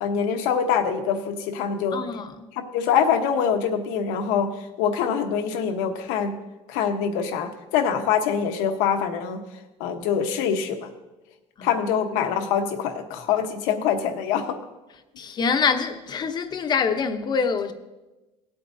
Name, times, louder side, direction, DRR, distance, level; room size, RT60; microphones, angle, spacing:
voice 1, 0.0-2.1 2.5-6.4 6.7-9.4 9.8-10.9 11.6-14.6, left 7 dB, 85° left, 1.1 m, -24 dB
voice 2, 1.9-2.4 11.6-11.8 15.2-17.7, left 6 dB, 35° left, 0.8 m, -25 dB
17.5 x 8.6 x 2.7 m
cardioid pair, 135°, 13 cm